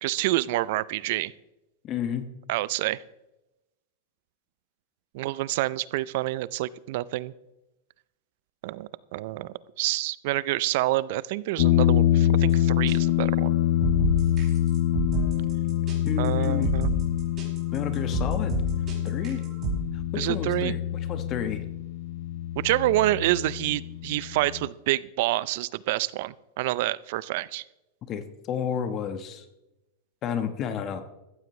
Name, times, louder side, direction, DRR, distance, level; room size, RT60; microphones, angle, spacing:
voice 1, 0.0-1.3 2.5-3.0 5.1-7.3 8.6-13.6 16.2-16.9 20.2-20.8 22.6-27.6, right 17 dB, 60° right, 20 dB, 0.5 m, -27 dB
voice 2, 1.8-2.3 16.0-16.7 17.7-18.5 19.0-19.4 19.9-21.6 28.1-29.4 30.2-31.0, left 8 dB, 35° left, 9 dB, 1.2 m, -31 dB
sound 1, 11.6-24.7, left 12 dB, 65° left, 0.5 m, -25 dB
sound 2, 12.5-12.6 12.9-13.0 13.4-19.8, right 4 dB, 30° right, 5.0 m, -30 dB
15.0 x 14.5 x 3.2 m, 0.95 s
supercardioid pair, 130°, 0 cm